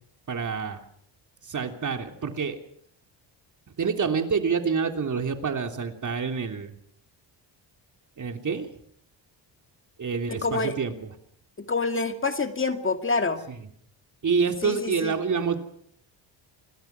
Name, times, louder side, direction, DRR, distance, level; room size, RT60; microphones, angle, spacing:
voice 1, 0.3-0.8 1.4-2.6 3.8-6.7 8.2-8.7 10.0-11.1 13.5-13.6 14.2-15.6, right 5 dB, 40° right, 5 dB, 3.3 m, -27 dB
voice 2, 10.3-10.7 11.7-13.4 14.6-15.1, left 3 dB, 25° left, 7 dB, 2.1 m, -27 dB
27.5 x 20.5 x 6.0 m, 0.66 s
cardioid pair, 100°, 45 cm